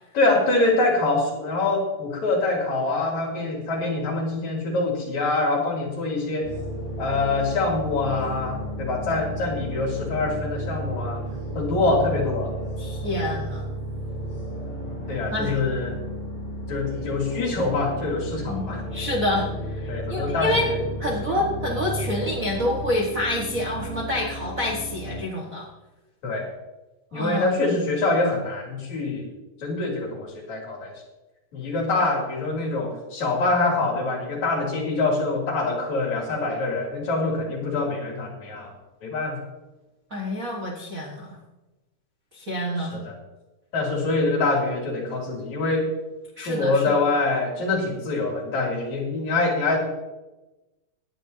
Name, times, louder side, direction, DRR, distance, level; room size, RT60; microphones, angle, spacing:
voice 1, 0.1-6.5 7.0-11.2 11.6-12.5 15.1-16.0 16.7-18.8 19.9-20.8 21.3-21.4 26.2-26.5 27.1-29.3 29.6-30.9 31.5-38.7 39.0-39.4 42.8-43.1 43.7-45.9 46.4-49.8, left 3 dB, 60° left, -1 dB, 4.0 m, -25 dB
sound 1, 6.4-25.2, equal, 15° left, 4.0 m, -33 dB
voice 2, 12.8-13.6 15.3-15.6 18.5-18.7 18.9-20.7 21.0-25.7 27.1-27.6 40.1-41.4 42.3-43.0 46.4-47.0, left 1 dB, 40° right, -2 dB, 1.2 m, -27 dB
18.0 x 10.5 x 2.8 m, 1.1 s
omnidirectional pair, 3.7 m